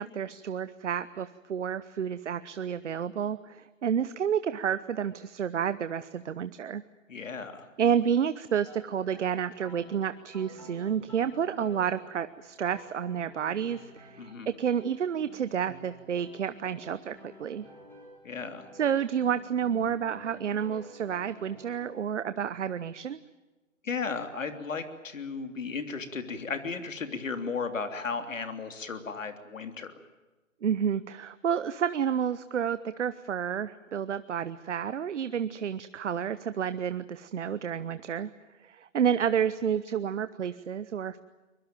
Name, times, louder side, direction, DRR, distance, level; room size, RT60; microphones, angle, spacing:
voice 1, 0.0-6.8 7.8-17.7 18.8-23.2 30.6-38.3 38.6-41.2, right 8 dB, 60° right, 13 dB, 1.1 m, -30 dB
voice 2, 7.1-7.7 14.2-14.5 18.2-18.7 23.8-29.9, left 5 dB, 70° left, 8 dB, 3.3 m, -35 dB
sound 1, 8.6-22.0, left 1 dB, 5° left, 6.0 m, -52 dB
24.0 x 22.5 x 9.1 m, 1.2 s
hypercardioid pair, 150°, 39 cm